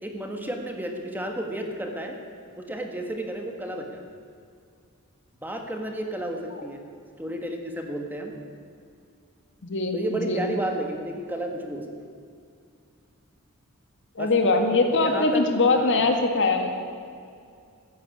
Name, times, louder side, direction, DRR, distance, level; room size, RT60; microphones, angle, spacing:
voice 1, 0.0-2.2 2.6-4.0 5.4-6.8 7.2-8.3 9.9-11.8 14.2-14.6 15.0-15.5 15.7-16.0, right 1 dB, 10° right, 3 dB, 1.6 m, -32 dB
voice 2, 9.6-10.4 14.2-16.7, left 3 dB, 60° left, 4 dB, 1.8 m, -22 dB
14.5 x 11.0 x 8.6 m, 2.3 s
head